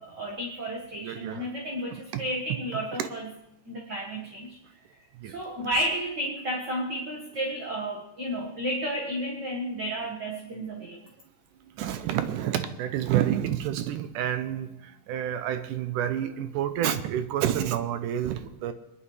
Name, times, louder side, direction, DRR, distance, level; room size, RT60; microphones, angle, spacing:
voice 1, 0.0-3.3 3.7-4.6 5.3-11.0, equal, 40° right, -2 dB, 1.9 m, -32 dB
voice 2, 1.0-1.5 2.1-2.2 2.7-3.1 5.2-5.3 5.6-5.7 10.8-10.9 11.7-18.7, right 10 dB, 85° right, 9 dB, 2.3 m, -29 dB
23.0 x 11.5 x 3.3 m, 0.86 s
omnidirectional pair, 3.6 m